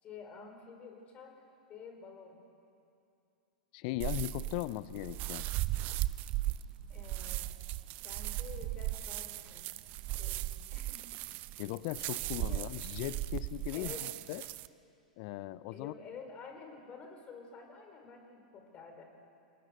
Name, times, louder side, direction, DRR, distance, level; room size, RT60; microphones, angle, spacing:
voice 1, 0.0-1.4 1.7-2.4 6.9-7.5 8.0-9.8 10.2-10.5 10.7-11.0 12.2-12.7 13.7-14.1 15.7-19.0, left 5 dB, 30° left, 4 dB, 4.7 m, -50 dB
voice 2, 3.7-5.5 11.6-13.9 14.3-14.4 15.2-15.9, left 17 dB, 50° left, 17 dB, 0.7 m, -38 dB
sound 1, 4.0-14.7, right 16 dB, 40° right, 0.6 m, -37 dB
28.0 x 18.5 x 6.5 m, 2.6 s
figure-of-eight pair, 100°, 4 cm